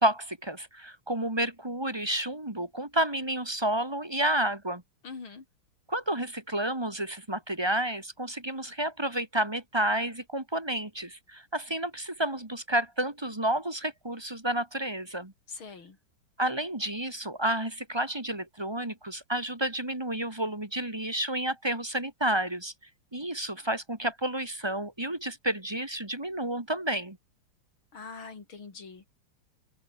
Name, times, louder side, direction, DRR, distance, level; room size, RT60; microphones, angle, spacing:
voice 1, 0.0-4.8 5.9-15.3 16.4-22.7 23.1-27.2, right 1 dB, 15° right, 2.0 m, -30 dB
voice 2, 5.0-5.4 15.5-16.0 27.9-29.1, left 5 dB, 90° left, 4.3 m, -43 dB
open air
omnidirectional pair, 2.2 m